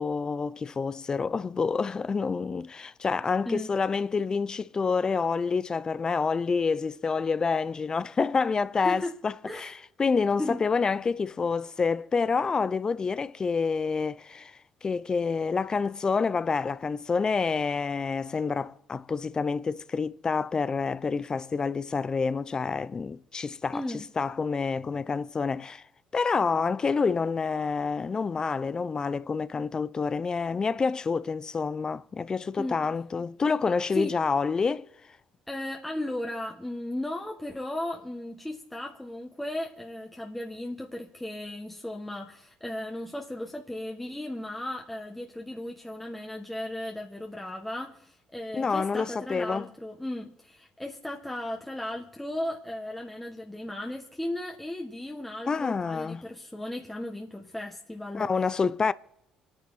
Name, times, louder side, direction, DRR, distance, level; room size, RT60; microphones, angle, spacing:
voice 1, 0.0-9.7 10.0-14.5 14.8-23.8 24.2-25.8 26.1-34.9 48.5-49.7 55.5-56.2 58.1-58.9, left 5 dB, 30° left, 0.6 m, -28 dB
voice 2, 3.4-3.8 8.8-9.1 9.4-9.8 10.4-10.6 23.7-24.1 32.6-32.9 33.9-34.2 35.5-58.3, left 1 dB, 5° left, 1.6 m, -36 dB
26.0 x 9.7 x 4.2 m
supercardioid pair, 70°, 2 cm